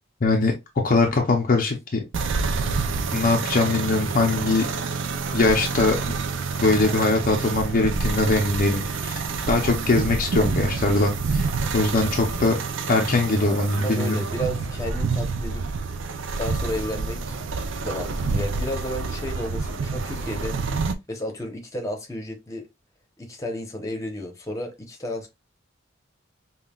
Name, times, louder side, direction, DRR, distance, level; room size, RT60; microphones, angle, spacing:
voice 1, 0.2-0.5 0.8-2.0 3.1-4.7 5.3-6.0 6.6-9.2 9.5-12.6 12.9-14.2, left 3 dB, 45° left, 0.6 m, -21 dB
sound 1, 2.1-20.9, right 4 dB, 65° right, 0.4 m, -28 dB
voice 2, 13.4-15.6 16.1-17.4 17.8-20.5 21.1-22.6 23.2-25.3, equal, 15° left, 0.9 m, -32 dB
5.5 x 2.3 x 2.3 m
head